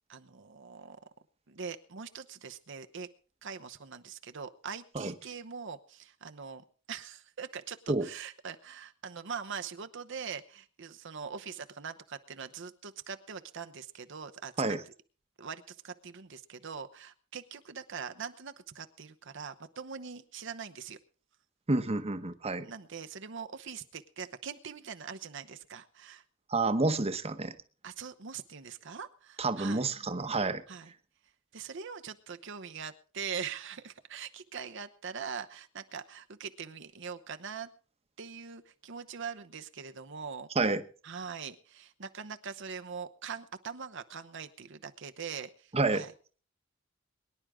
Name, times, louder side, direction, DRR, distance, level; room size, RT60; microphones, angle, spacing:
voice 1, 0.1-1.0 1.5-3.1 3.4-14.8 15.4-21.0 22.6-26.2 27.8-29.9 30.7-30.9 31.5-37.7 38.2-40.5 41.0-46.1, right 6 dB, 65° right, 8 dB, 0.9 m, -42 dB
voice 2, 21.7-22.7 26.5-27.5 29.4-30.6 40.5-40.8 45.7-46.0, right 3 dB, 30° right, 10 dB, 1.1 m, -29 dB
23.0 x 10.5 x 3.7 m, 0.39 s
head